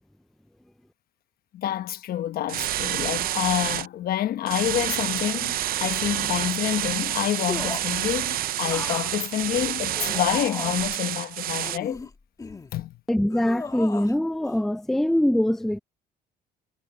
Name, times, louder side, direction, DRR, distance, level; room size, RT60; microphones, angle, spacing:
voice 1, 1.5-12.0 12.7-13.0, left 12 dB, 60° left, 1.0 m, -28 dB
sound 1, 2.5-3.9 4.5-11.8, right 13 dB, 60° right, 0.6 m, -28 dB
sound 2, 7.5-8.0 8.6-11.0 11.6-12.7 13.3-14.2 14.4-14.6, left 3 dB, 20° left, 1.9 m, -36 dB
voice 2, 13.1-15.8, left 1 dB, ahead, 0.4 m, -23 dB
cardioid pair, 110°, 17 cm